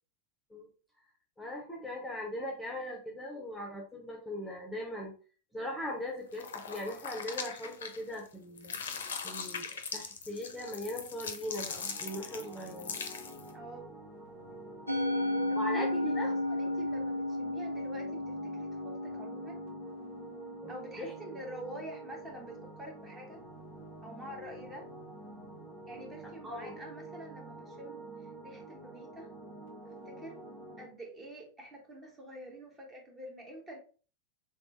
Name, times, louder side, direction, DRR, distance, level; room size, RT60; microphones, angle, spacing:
voice 1, 1.4-5.1 5.5-8.8 9.2-13.0 15.6-16.3 20.6-20.7 21.0-21.1 26.4-26.8, left 1 dB, ahead, -2 dB, 0.9 m, -39 dB
sound 1, 6.3-8.3 8.6-13.5, left 6 dB, 65° left, 0.5 m, -41 dB
sound 2, 11.4-30.8, right 2 dB, 55° right, 1.6 m, -48 dB
voice 2, 13.5-13.9 14.9-19.6 20.7-23.4 24.0-24.9 25.9-28.1 28.4-29.3 29.8-30.4 30.8-33.8, right 1 dB, 20° right, 0 dB, 1.2 m, -47 dB
Musical instrument, 14.9-21.3, left 1 dB, 90° right, 0.4 m, -34 dB
3.3 x 3.3 x 2.8 m, 0.39 s
figure-of-eight pair, 90°, 0 cm